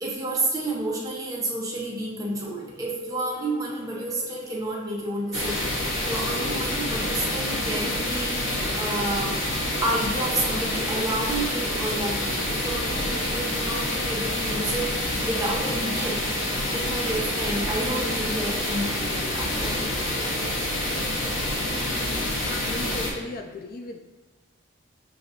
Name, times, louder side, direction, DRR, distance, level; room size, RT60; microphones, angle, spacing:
voice 1, 0.0-9.4 9.8-16.2 16.7-19.9, right 1 dB, 20° right, -4 dB, 0.9 m, -30 dB
sound 1, 2.8-21.3, right 2 dB, 35° left, 1.4 m, -46 dB
sound 2, 5.3-23.1, left 1 dB, 90° left, 1.0 m, -27 dB
voice 2, 22.5-24.0, left 3 dB, 50° left, 4 dB, 0.3 m, -36 dB
7.5 x 2.6 x 2.6 m, 1.3 s
head